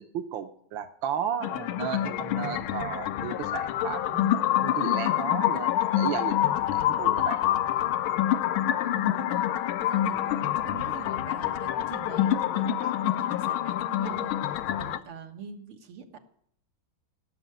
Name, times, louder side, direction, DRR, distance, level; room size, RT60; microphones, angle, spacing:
voice 1, 0.0-7.4 12.8-12.9, right 9 dB, 70° right, 7 dB, 1.6 m, -34 dB
sound 1, 1.4-15.0, left 12 dB, 80° left, 1.5 m, -27 dB
voice 2, 8.8-16.2, right 5 dB, 85° right, 4 dB, 2.3 m, -44 dB
16.5 x 6.6 x 9.3 m, 0.66 s
omnidirectional pair, 2.3 m